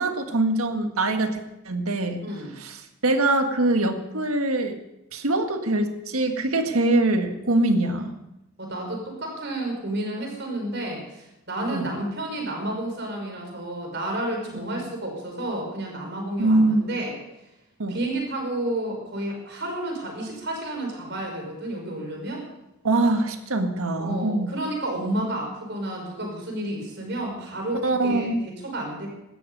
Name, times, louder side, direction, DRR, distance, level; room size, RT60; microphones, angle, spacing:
voice 1, 0.0-1.4 1.7-2.2 2.6-4.8 5.1-8.2 11.7-11.9 14.7-14.8 16.4-16.9 17.8-18.0 22.8-24.5 27.8-28.3, right 2 dB, 85° right, 6 dB, 1.8 m, -23 dB
voice 2, 8.6-17.1 17.9-22.4 24.0-29.1, right 1 dB, 50° right, 2 dB, 5.3 m, -31 dB
17.5 x 13.0 x 5.5 m, 0.89 s
head